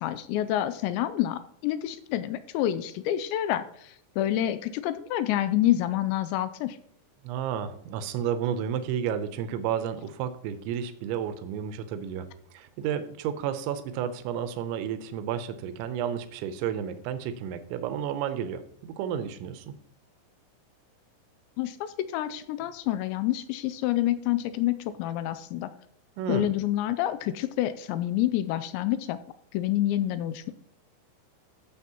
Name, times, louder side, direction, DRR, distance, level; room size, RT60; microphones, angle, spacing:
voice 1, 0.0-6.8 21.6-25.7 26.3-29.2 29.5-30.5, left 13 dB, 85° left, 13 dB, 2.7 m, -28 dB
voice 2, 7.2-19.7 26.2-26.5, right 9 dB, 85° right, 10 dB, 3.1 m, -32 dB
13.0 x 7.7 x 2.9 m, 0.67 s
omnidirectional pair, 5.3 m